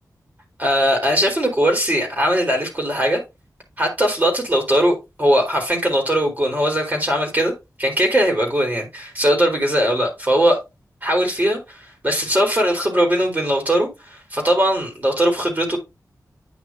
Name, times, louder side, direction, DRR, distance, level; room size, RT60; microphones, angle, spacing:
voice 1, 0.6-3.2 3.8-7.5 7.8-10.6 11.0-15.8, equal, 25° right, 1 dB, 3.6 m, -20 dB
9.7 x 5.8 x 2.9 m, 0.23 s
wide cardioid pair, 90°, 7 cm